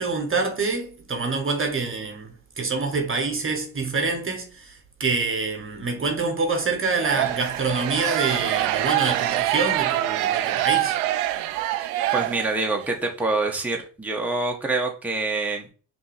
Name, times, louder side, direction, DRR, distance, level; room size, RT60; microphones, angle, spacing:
voice 1, 0.0-11.0 12.0-12.1, right 4 dB, 30° right, 1.1 m, -26 dB
sound 1, 6.9-12.9, right 14 dB, 75° right, 0.5 m, -25 dB
voice 2, 12.1-15.7, right 3 dB, 5° right, 1.0 m, -26 dB
5.6 x 2.8 x 3.3 m
hypercardioid pair, 50°, 45 cm